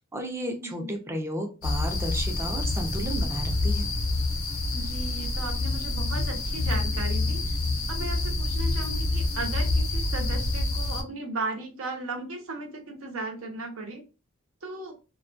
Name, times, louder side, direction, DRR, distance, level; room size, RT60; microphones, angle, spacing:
voice 1, 0.0-3.9, right 1 dB, 15° right, 4 dB, 0.4 m, -33 dB
voice 2, 0.6-1.0 4.7-7.6 7.9-14.0 14.6-14.9, right 3 dB, 75° right, 2 dB, 0.7 m, -36 dB
sound 1, 1.6-11.0, left 2 dB, 75° left, 0.6 m, -27 dB
2.3 x 2.2 x 2.5 m, 0.31 s
head